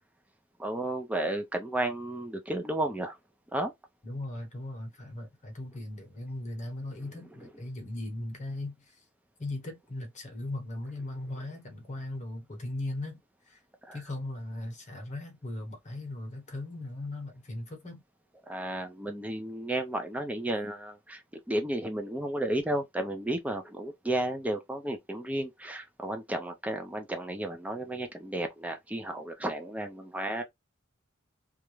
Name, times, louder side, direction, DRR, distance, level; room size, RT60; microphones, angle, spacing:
voice 1, 0.6-3.1 3.5-3.7 13.8-14.0 18.5-21.2 21.5-30.4, right 1 dB, 5° right, 0.4 m, -33 dB
voice 2, 4.0-9.0 9.4-13.2 13.5-13.6 13.9-18.0, left 1 dB, 35° left, 0.9 m, -38 dB
2.4 x 2.1 x 3.0 m
head